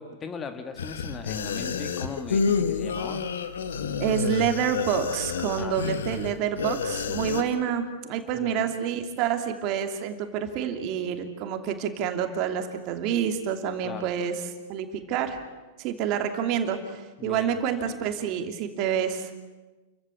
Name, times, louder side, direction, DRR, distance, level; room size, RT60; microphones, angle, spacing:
voice 1, 0.0-3.2 5.6-6.0 8.3-8.7 13.8-14.1 17.2-17.5 17.9-18.0, left 4 dB, 25° left, 8 dB, 2.2 m, -39 dB
sound 1, 0.8-7.4, left 5 dB, 80° left, 1.8 m, -29 dB
voice 2, 4.0-14.4 14.7-15.4 15.8-19.3, right 8 dB, 45° right, 6 dB, 2.8 m, -28 dB
29.5 x 15.0 x 8.6 m, 1.2 s
hypercardioid pair, 110°, 0 cm